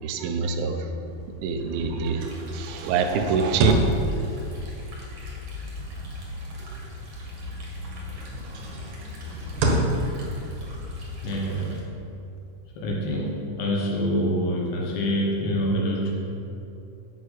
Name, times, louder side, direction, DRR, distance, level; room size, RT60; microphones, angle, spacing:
voice 1, 0.0-0.9 1.4-3.7, right 5 dB, 80° right, 6 dB, 3.1 m, -25 dB
sound 1, 1.0-7.4 7.8-13.2, right 1 dB, 65° right, 2.8 m, -31 dB
sound 2, 2.2-11.8, left 2 dB, 45° right, 2.1 m, -39 dB
voice 2, 11.2-11.8 12.8-16.1, equal, 70° left, -2 dB, 3.1 m, -26 dB
9.8 x 6.2 x 8.4 m, 2.7 s
omnidirectional pair, 5.5 m